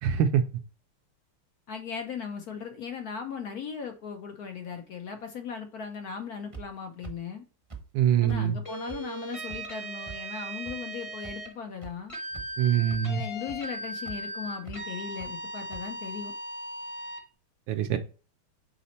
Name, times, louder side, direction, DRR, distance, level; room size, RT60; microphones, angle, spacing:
voice 1, 0.0-0.4 7.9-8.6 12.6-13.2 17.7-18.0, right 9 dB, 75° right, 1.2 m, -24 dB
voice 2, 1.7-7.4 8.2-12.1 13.1-16.3, left 6 dB, 70° left, 0.9 m, -38 dB
sound 1, 6.5-6.6 7.0-7.1 7.7-7.8 8.3-8.4 8.9-9.0 9.5-9.6 10.1-10.2 10.7-10.8 11.2-11.3 11.8-11.9 12.3-12.6 12.9-13.0 13.5-13.6 14.1-14.2 14.6-14.8 15.2-15.3 15.7-15.8, right 5 dB, 25° right, 0.7 m, -42 dB
sound 2, 8.7-11.5 12.1-17.2, right 1 dB, 25° left, 0.7 m, -38 dB
5.6 x 4.1 x 4.2 m
omnidirectional pair, 2.4 m